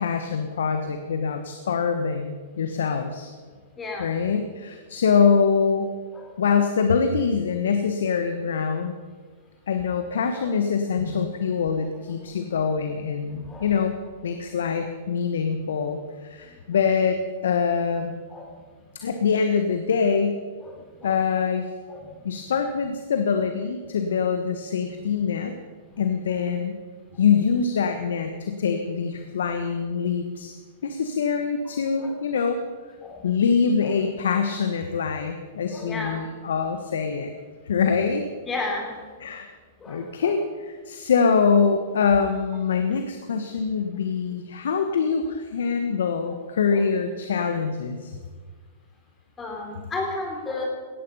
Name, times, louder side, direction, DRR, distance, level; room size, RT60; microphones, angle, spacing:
voice 1, 0.0-3.3 4.0-5.9 6.4-8.9 9.7-14.0 14.2-18.1 18.9-20.4 21.0-21.7 22.2-25.5 26.0-26.7 27.2-30.5 30.8-32.6 33.2-37.3 37.7-38.3 39.2-39.5 39.9-48.2, left 6 dB, 75° left, 7 dB, 1.3 m, -24 dB
voice 2, 3.8-4.1 6.1-6.3 10.1-10.5 11.0-11.1 13.2-13.7 18.3-18.5 19.0-19.1 20.6-20.7 21.0-21.1 21.9-22.1 25.9-26.0 32.0-32.1 32.4-32.5 33.0-33.3 33.8-33.9 34.3-34.4 35.7-36.2 38.5-39.0 39.8-40.3 46.7-46.8 49.4-50.7, left 3 dB, 20° left, 0 dB, 4.0 m, -33 dB
18.0 x 14.0 x 5.5 m, 1.5 s
hypercardioid pair, 110°, 0 cm